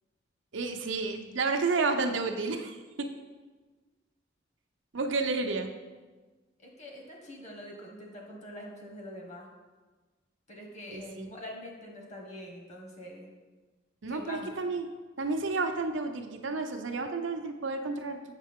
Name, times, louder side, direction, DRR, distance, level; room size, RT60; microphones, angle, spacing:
voice 1, 0.5-3.1 4.9-5.7 10.9-11.3 14.0-14.8 15.2-18.4, right 3 dB, 70° right, 5 dB, 0.7 m, -31 dB
voice 2, 2.9-3.2 6.6-9.5 10.5-13.3 14.1-14.5, left 1 dB, 40° left, 0 dB, 1.5 m, -44 dB
7.4 x 6.4 x 3.6 m, 1.3 s
head